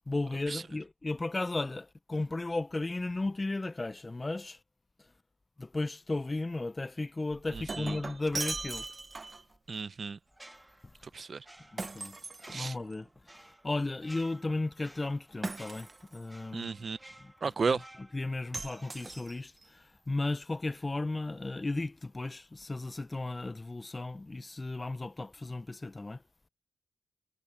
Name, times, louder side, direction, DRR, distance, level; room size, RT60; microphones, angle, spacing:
voice 1, 0.1-4.6 5.6-8.9 11.7-12.2 12.5-13.1 13.6-16.7 17.2-17.3 17.7-17.8 18.1-26.2, left 2 dB, 30° left, 0.8 m, -35 dB
Shatter, 7.3-9.5 11.8-13.1 15.4-16.2 18.5-19.6, right 3 dB, 40° right, 1.5 m, -39 dB
voice 2, 7.5-8.0 9.7-10.2 11.1-11.5 12.5-12.8 16.5-17.0 17.4-17.9, right 5 dB, 55° right, 0.8 m, -34 dB
sound 1, 10.3-19.7 20.0-20.2, right 1 dB, 15° right, 1.8 m, -56 dB
supercardioid pair, 40°, 0 cm